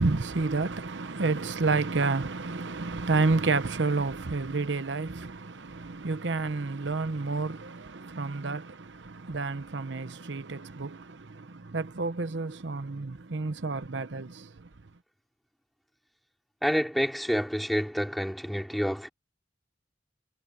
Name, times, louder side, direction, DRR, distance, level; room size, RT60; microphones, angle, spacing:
voice 1, 0.0-14.7, right 3 dB, 80° right, 0.9 m, -30 dB
voice 2, 16.6-19.1, equal, ahead, 3.8 m, -28 dB
head